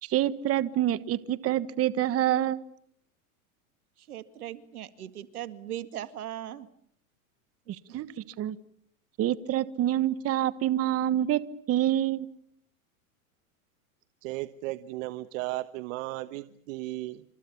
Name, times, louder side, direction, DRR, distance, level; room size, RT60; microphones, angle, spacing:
voice 1, 0.0-2.6 7.9-8.6 9.2-11.4 11.7-12.3, right 12 dB, 35° right, 1.3 m, -26 dB
voice 2, 4.0-6.7 7.9-8.0, right 12 dB, 85° right, 2.1 m, -39 dB
voice 3, 14.2-17.2, right 18 dB, 60° right, 1.3 m, -35 dB
29.0 x 27.0 x 7.1 m
hypercardioid pair, 115°, 43 cm